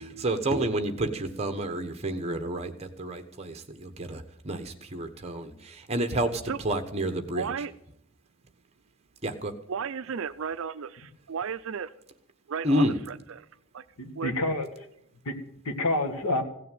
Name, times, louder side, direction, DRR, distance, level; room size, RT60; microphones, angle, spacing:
voice 1, 0.0-7.5 9.2-9.5 12.6-13.0, right 1 dB, 30° right, 7 dB, 1.2 m, -30 dB
voice 2, 7.3-7.7 9.7-11.9 12.5-13.5 13.7-13.8 14.2-14.3, right 6 dB, 60° right, 13 dB, 0.4 m, -34 dB
voice 3, 14.0-14.7 15.2-16.4, left 2 dB, 80° left, 6 dB, 1.8 m, -28 dB
16.5 x 6.8 x 9.2 m, 0.74 s
head